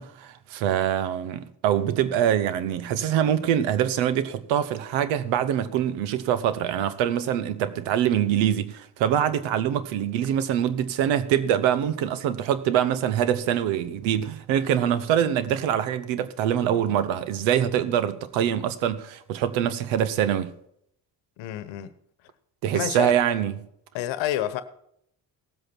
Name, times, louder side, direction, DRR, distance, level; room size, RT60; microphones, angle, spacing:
voice 1, 0.0-20.5 22.6-23.5, right 10 dB, 85° right, 1.0 m, -24 dB
voice 2, 21.4-21.9 22.7-23.1 23.9-24.6, left 12 dB, 80° left, 1.1 m, -29 dB
18.0 x 7.9 x 4.4 m
supercardioid pair, 60°, 45 cm